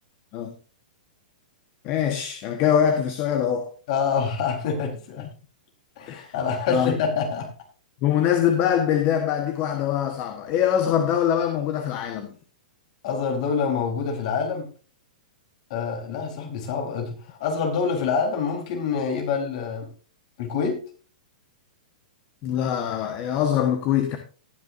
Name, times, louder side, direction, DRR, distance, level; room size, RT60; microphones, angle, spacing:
voice 1, 1.8-3.7 6.1-6.3 6.7-7.0 8.0-12.3 22.4-24.2, left 9 dB, 35° left, 1.4 m, -23 dB
voice 2, 3.9-5.3 6.0-7.5 13.0-14.7 15.7-19.9 20.4-20.8, left 5 dB, 50° left, 4.2 m, -26 dB
19.0 x 6.8 x 2.7 m
hypercardioid pair, 145°, 5 cm